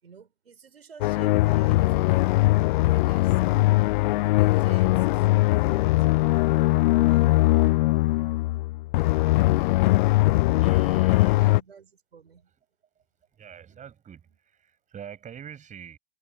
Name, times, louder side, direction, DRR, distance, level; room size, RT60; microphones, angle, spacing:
voice 1, 0.0-2.4 2.7-3.7 4.1-7.6 11.3-12.6 13.7-13.8, right 6 dB, 80° right, 5.5 m, -50 dB
sound 1, 1.0-11.6, left 19 dB, 55° left, 0.7 m, -21 dB
voice 2, 10.6-11.4 13.0-13.1 13.3-16.0, right 8 dB, 25° right, 6.1 m, -45 dB
hypercardioid pair, 95°, 30 cm